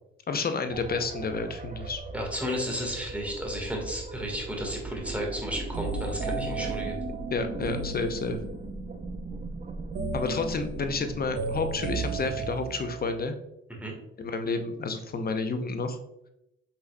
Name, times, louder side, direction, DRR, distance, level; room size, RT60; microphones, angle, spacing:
voice 1, 0.3-2.0 7.3-8.4 10.1-13.4 14.2-16.0, left 4 dB, 30° left, 7 dB, 0.7 m, -30 dB
sound 1, 0.7-12.5, right 3 dB, 25° right, 0.7 m, -38 dB
voice 2, 2.1-7.0 13.8-13.9, equal, 5° right, 0 dB, 1.6 m, -33 dB
sound 2, 5.7-8.7 9.9-13.2, right 4 dB, 75° right, 1.0 m, -35 dB
5.5 x 4.0 x 2.3 m, 0.83 s
hypercardioid pair, 55°, 30 cm